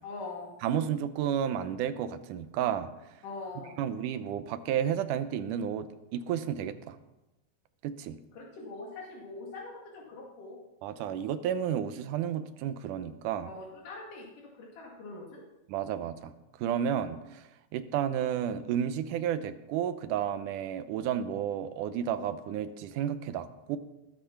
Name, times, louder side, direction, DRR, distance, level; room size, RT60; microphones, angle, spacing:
voice 1, 0.0-0.5 3.2-3.8 8.3-10.6 13.5-15.4, left 3 dB, 85° left, -1 dB, 3.8 m, -43 dB
voice 2, 0.6-2.9 3.8-5.9 6.1-7.0 7.8-8.2 10.8-13.5 15.7-16.3 16.6-17.4 17.7-23.8, right 9 dB, 90° right, 11 dB, 2.3 m, -32 dB
19.5 x 8.9 x 5.8 m, 0.94 s
omnidirectional pair, 3.6 m